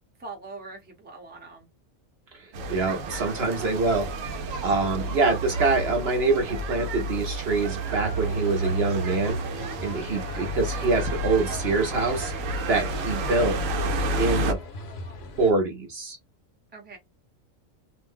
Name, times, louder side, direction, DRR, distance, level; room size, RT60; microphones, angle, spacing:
voice 1, 0.2-1.7 3.5-3.7 16.7-17.0, right 3 dB, 10° right, 0.6 m, -43 dB
voice 2, 2.3-4.1 4.6-9.4 9.8-12.3 12.7-13.6 14.2-14.6 15.4-16.2, right 3 dB, 55° right, 0.9 m, -25 dB
sound 1, 2.5-14.5, right 2 dB, 80° right, 1.0 m, -30 dB
sound 2, 7.8-15.5, left 2 dB, 55° left, 0.9 m, -40 dB
2.6 x 2.1 x 3.4 m
omnidirectional pair, 1.4 m